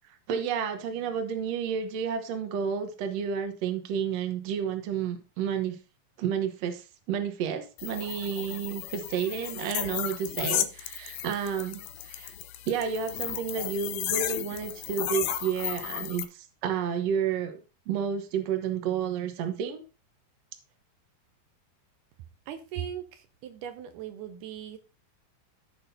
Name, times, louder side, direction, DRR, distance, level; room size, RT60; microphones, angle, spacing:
voice 1, 0.3-5.8 6.2-12.4 12.7-17.6 17.9-19.8, right 7 dB, 60° right, 7 dB, 2.0 m, -31 dB
sound 1, 7.8-16.2, left 12 dB, 75° left, 1.8 m, -34 dB
voice 2, 22.5-24.8, right 9 dB, 80° right, 8 dB, 2.2 m, -39 dB
15.0 x 6.1 x 2.7 m, 0.33 s
omnidirectional pair, 3.7 m